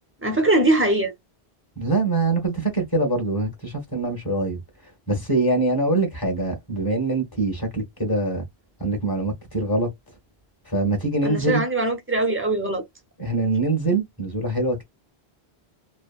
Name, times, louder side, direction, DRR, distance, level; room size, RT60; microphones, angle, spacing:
voice 1, 0.2-1.1 11.2-12.8, right 2 dB, 15° right, 0.6 m, -21 dB
voice 2, 1.8-4.6 5.1-8.4 8.8-9.9 10.7-11.6 13.2-14.8, right 2 dB, 20° left, 1.2 m, -24 dB
3.2 x 2.0 x 2.4 m
omnidirectional pair, 1.1 m